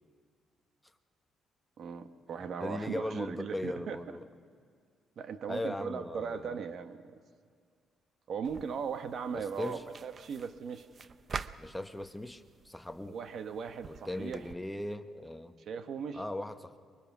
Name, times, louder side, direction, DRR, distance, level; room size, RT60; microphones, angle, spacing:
voice 1, 1.8-4.0 5.2-7.0 8.3-10.9 13.0-14.4 15.7-16.2, right 6 dB, 60° right, 9 dB, 1.2 m, -38 dB
voice 2, 2.6-4.2 5.5-6.6 9.3-9.8 11.6-13.2 13.9-15.5 16.1-16.8, left 1 dB, 5° left, 7 dB, 1.1 m, -38 dB
sound 1, 8.4-14.5, right 5 dB, 40° right, 0.6 m, -47 dB
24.0 x 22.0 x 6.1 m, 2.1 s
cardioid pair, 90°, 0 cm